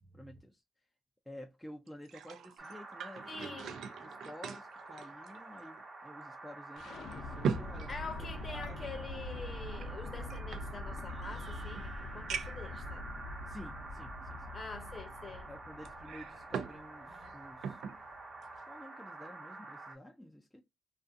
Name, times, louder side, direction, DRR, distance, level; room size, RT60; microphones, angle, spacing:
voice 1, 0.1-0.6 1.3-3.6 4.0-7.9 8.5-8.9 13.5-14.5 15.5-17.8 18.7-20.6, left 1 dB, 5° left, 0.4 m, -51 dB
sound 1, 1.9-5.9 6.2-6.3 6.9-8.9 9.7-11.2 11.7-11.8 12.3-12.7 13.5-13.6 15.8-16.8 17.1-18.0 18.4-18.6, right 6 dB, 75° right, 0.3 m, -41 dB
sound 2, 2.6-20.0, right 3 dB, 35° right, 0.8 m, -48 dB
voice 2, 3.3-3.8 7.9-13.1 14.5-15.5 17.1-17.3, left 4 dB, 30° left, 0.7 m, -45 dB
sound 3, 6.8-18.6, left 2 dB, 80° left, 0.6 m, -45 dB
2.3 x 2.3 x 2.5 m
cardioid pair, 125°, 0 cm